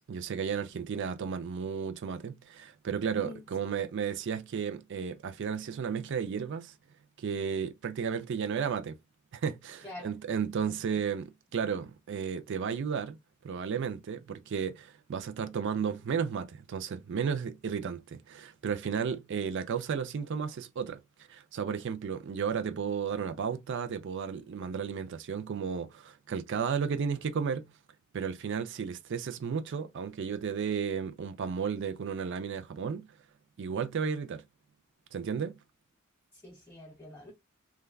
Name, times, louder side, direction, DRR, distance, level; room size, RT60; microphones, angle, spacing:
voice 1, 0.0-6.7 7.2-8.9 9.3-13.2 13.4-21.0 21.3-27.7 28.1-33.1 33.6-34.4 35.1-35.6, right 6 dB, 55° right, 0.4 m, -33 dB
voice 2, 9.8-10.2 10.6-10.8 36.3-37.3, left 1 dB, 10° left, 0.7 m, -46 dB
3.3 x 2.2 x 2.2 m
head